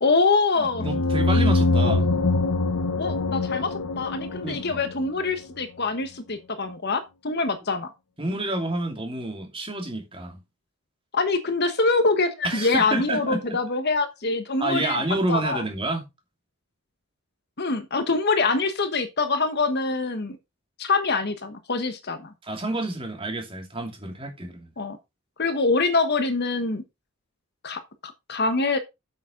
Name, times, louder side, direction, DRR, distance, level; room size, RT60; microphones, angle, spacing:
voice 1, 0.0-0.8 3.0-7.9 11.1-15.0 15.3-15.6 17.6-20.4 20.8-22.3 24.8-25.0 25.4-26.8 27.6-28.8, left 3 dB, 50° left, 1.2 m, -24 dB
voice 2, 0.6-2.1 4.4-4.8 8.2-10.4 12.4-13.6 14.6-16.0 22.4-24.7, right 2 dB, 25° right, 2.8 m, -29 dB
sound 1, 0.7-5.3, left 2 dB, 85° left, 0.9 m, -24 dB
8.4 x 7.2 x 3.8 m
head